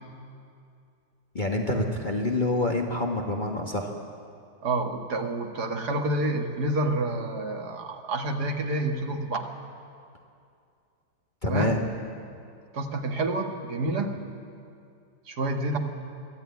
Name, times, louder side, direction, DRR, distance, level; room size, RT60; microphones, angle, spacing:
voice 1, 1.3-3.9 11.4-11.8, left 2 dB, 30° left, 1 dB, 1.4 m, -27 dB
voice 2, 4.6-9.5 11.5-11.8 12.7-14.2 15.3-15.8, right 2 dB, 70° right, 4 dB, 2.1 m, -28 dB
22.0 x 14.0 x 9.4 m, 2.4 s
omnidirectional pair, 1.8 m